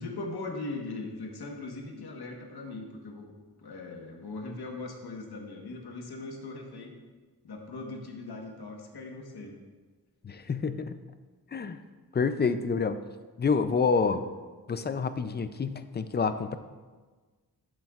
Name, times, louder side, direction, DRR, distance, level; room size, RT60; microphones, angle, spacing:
voice 1, 0.0-3.3 3.6-6.9 7.4-9.6, left 3 dB, 80° left, 1 dB, 1.3 m, -39 dB
voice 2, 10.2-11.0 11.5-11.8 12.1-13.0 13.4-14.2 14.7-16.6, left 5 dB, 30° left, 11 dB, 0.4 m, -28 dB
11.5 x 7.7 x 2.4 m, 1.4 s
wide cardioid pair, 140°, 38 cm